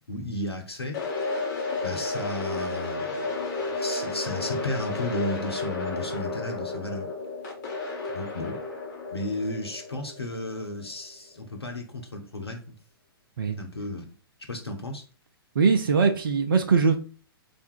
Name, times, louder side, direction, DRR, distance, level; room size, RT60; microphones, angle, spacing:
voice 1, 0.1-1.0 1.8-3.3 3.6-7.1 8.1-8.6 9.1-12.7 13.6-14.0 14.5-15.0, left 1 dB, 80° left, 0.9 m, -34 dB
sound 1, 0.9-11.0, left 3 dB, 45° left, 1.5 m, -32 dB
voice 2, 15.5-17.0, right 5 dB, 60° right, 0.6 m, -21 dB
3.5 x 2.6 x 4.4 m
figure-of-eight pair, 115°, 13 cm